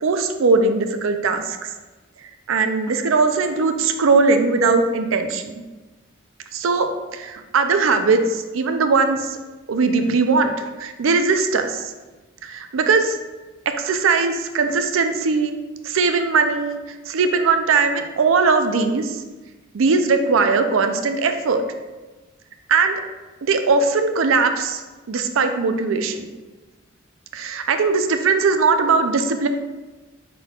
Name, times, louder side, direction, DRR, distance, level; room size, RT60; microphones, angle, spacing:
voice 1, 0.0-1.6 2.5-5.5 6.5-9.4 9.7-10.5 10.8-11.9 12.4-13.2 13.8-15.5 15.8-16.8 17.1-19.2 19.7-21.6 22.7-23.0 23.4-24.8 25.1-26.3 27.3-29.5, right 4 dB, 80° right, 7 dB, 0.4 m, -19 dB
5.8 x 3.8 x 2.3 m, 1.2 s
head